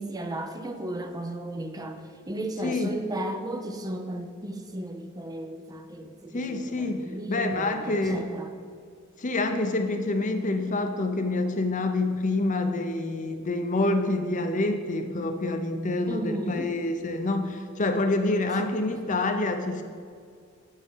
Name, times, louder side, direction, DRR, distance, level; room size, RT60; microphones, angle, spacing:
voice 1, 0.0-8.6 16.1-16.7 18.5-19.0, right 1 dB, 20° right, 6 dB, 0.5 m, -35 dB
voice 2, 6.3-7.0 7.3-8.2 9.2-19.8, left 2 dB, 40° left, 6 dB, 0.7 m, -27 dB
7.3 x 6.5 x 5.6 m, 2.2 s
head